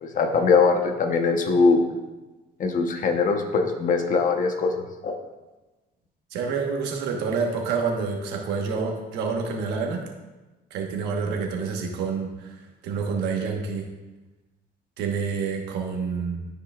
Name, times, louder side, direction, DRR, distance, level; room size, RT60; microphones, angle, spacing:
voice 1, 0.0-1.8 2.6-4.7 5.0-5.2, left 4 dB, 50° left, 5 dB, 1.0 m, -21 dB
voice 2, 6.3-10.0 10.7-13.9 15.0-16.5, right 5 dB, 85° right, 2 dB, 1.3 m, -28 dB
12.0 x 4.9 x 2.4 m, 1.1 s
cardioid pair, 110°, 17 cm